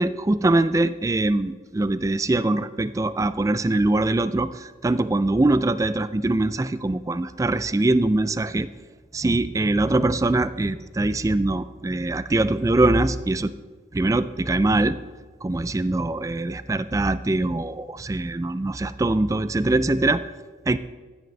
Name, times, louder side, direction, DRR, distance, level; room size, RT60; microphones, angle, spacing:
voice 1, 0.0-8.7 9.1-13.5 13.9-15.0 15.4-20.2 20.7-20.8, right 2 dB, 20° right, 14 dB, 0.3 m, -22 dB
15.5 x 9.2 x 3.2 m, 1.4 s
head